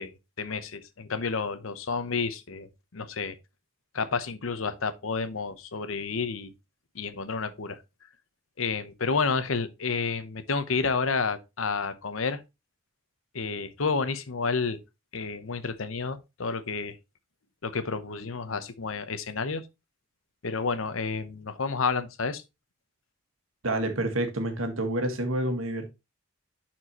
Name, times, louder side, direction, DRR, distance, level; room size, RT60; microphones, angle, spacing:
voice 1, 0.0-3.4 3.9-6.5 6.9-7.8 8.6-12.4 13.3-14.8 15.1-17.0 17.6-19.6 20.4-22.4, left 4 dB, 85° left, 0.9 m, -30 dB
voice 2, 23.6-25.9, right 1 dB, 90° right, 1.7 m, -28 dB
11.0 x 4.5 x 2.9 m
head